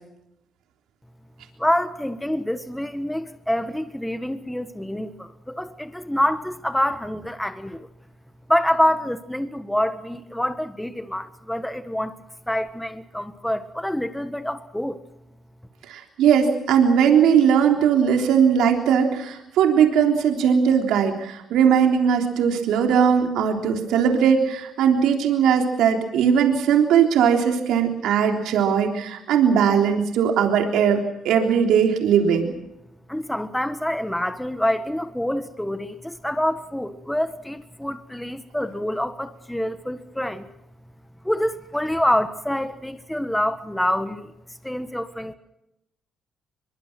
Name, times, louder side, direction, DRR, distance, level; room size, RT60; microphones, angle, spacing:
voice 1, 1.6-7.9 8.5-12.1 12.5-15.0 33.1-40.5 41.2-44.3 44.6-45.3, left 1 dB, 5° left, 10 dB, 1.5 m, -26 dB
voice 2, 15.9-32.5, right 7 dB, 85° right, 3 dB, 3.5 m, -19 dB
23.5 x 23.0 x 6.1 m, 0.86 s
cardioid pair, 90°, 0 cm